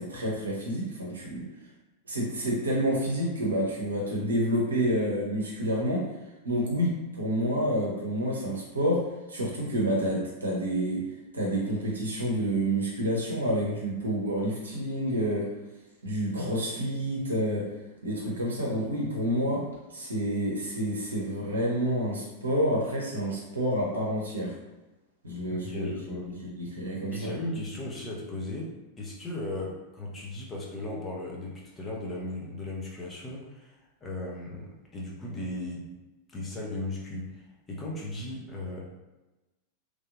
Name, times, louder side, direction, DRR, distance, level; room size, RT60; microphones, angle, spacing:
voice 1, 0.0-1.4 2.1-6.1 6.4-11.0 11.3-15.5 16.0-17.7 18.0-19.7 19.9-24.5 25.2-26.0 26.2-27.3, equal, 75° right, -3 dB, 0.9 m, -29 dB
voice 2, 25.5-26.3 27.1-33.7 34.0-35.8 36.3-37.4 37.7-38.8, left 1 dB, 20° left, -3 dB, 0.8 m, -36 dB
3.2 x 2.6 x 2.5 m, 1.1 s
figure-of-eight pair, 90°, 0 cm